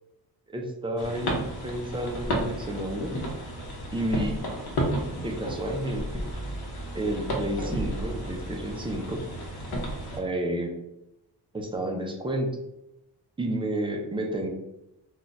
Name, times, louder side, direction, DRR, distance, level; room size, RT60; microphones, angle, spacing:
voice 1, 0.5-3.2 3.9-4.4 5.2-6.2 6.9-9.2 10.1-10.8 11.5-12.5 13.4-14.5, right 1 dB, 15° right, 2 dB, 0.3 m, -31 dB
sound 1, 1.0-10.2, equal, 65° left, 0.8 m, -32 dB
2.5 x 2.2 x 3.9 m, 0.88 s
wide cardioid pair, 145°, 40 cm